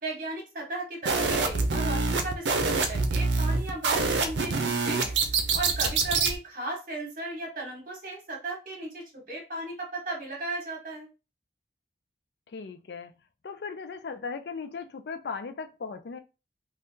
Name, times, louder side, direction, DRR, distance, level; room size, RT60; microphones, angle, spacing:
voice 1, 0.0-5.1 5.5-11.1, right 2 dB, 45° right, 1.3 m, -36 dB
sound 1, 1.1-6.4, right 4 dB, 85° right, 0.6 m, -26 dB
voice 2, 12.5-13.1 13.4-16.2, left 5 dB, 65° left, 0.4 m, -37 dB
3.5 x 2.3 x 2.7 m
head